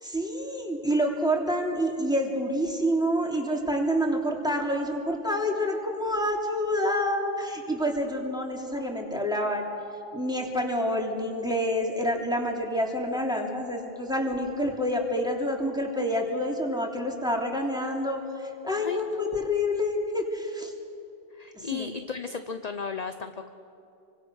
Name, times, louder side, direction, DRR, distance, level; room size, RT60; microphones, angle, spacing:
voice 1, 0.0-9.7 10.1-20.7 21.5-21.9, equal, 5° right, 0 dB, 3.1 m, -28 dB
voice 2, 18.8-19.5 21.3-23.5, left 5 dB, 40° left, 8 dB, 0.8 m, -35 dB
29.0 x 24.5 x 6.4 m, 2.7 s
omnidirectional pair, 1.2 m